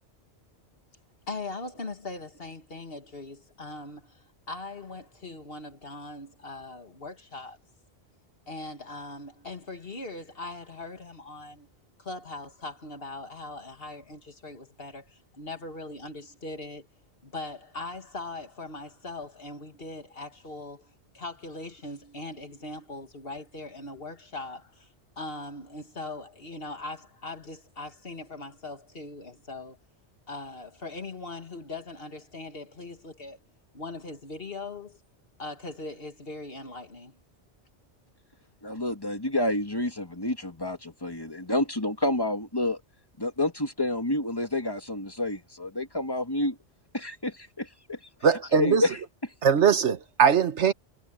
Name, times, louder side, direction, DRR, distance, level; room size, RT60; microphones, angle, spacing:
voice 1, 1.3-7.6 8.5-11.7 12.0-16.9 17.2-24.9 25.2-29.8 30.3-33.4 33.7-35.0 35.4-37.1, left 2 dB, 55° left, 2.2 m, -40 dB
voice 2, 38.6-42.8 43.2-46.6 46.9-48.0 48.5-49.0, left 1 dB, 20° left, 2.2 m, -29 dB
voice 3, 48.2-48.9 49.4-50.7, right 7 dB, 75° right, 1.4 m, -21 dB
omnidirectional pair, 1.2 m